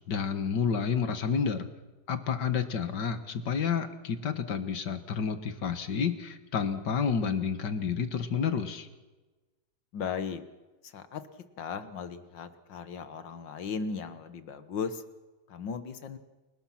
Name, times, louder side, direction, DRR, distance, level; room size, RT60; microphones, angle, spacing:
voice 1, 0.1-1.7 2.1-8.9, left 6 dB, 70° left, 10 dB, 2.2 m, -30 dB
voice 2, 9.9-10.4 10.8-11.2 11.6-15.0 15.5-16.2, left 6 dB, 90° left, 11 dB, 2.1 m, -36 dB
29.0 x 19.5 x 5.9 m, 1.2 s
omnidirectional pair, 1.9 m